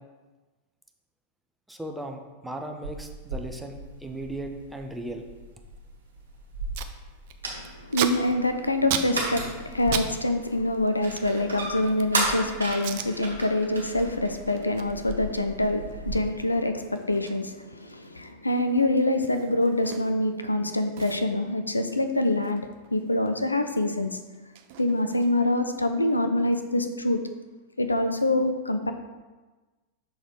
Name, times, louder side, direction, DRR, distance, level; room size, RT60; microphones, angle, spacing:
voice 1, 1.7-5.2, right 1 dB, 5° right, 3 dB, 0.7 m, -37 dB
sound 1, 2.8-16.2, right 2 dB, 70° right, 1.5 m, -35 dB
Packing tape duct tape, 6.2-6.3 6.5-6.9 7.2-10.1 10.4-12.2 12.7-13.1 13.6-13.8 14.1-20.4 20.6-20.7 20.9-23.3 23.6-25.6, right 9 dB, 50° right, 0.4 m, -37 dB
voice 2, 7.5-24.1 24.8-27.2 27.8-28.9, left 1 dB, 80° left, 7 dB, 0.4 m, -25 dB
6.2 x 3.9 x 4.6 m, 1.3 s
figure-of-eight pair, 90°, 0 cm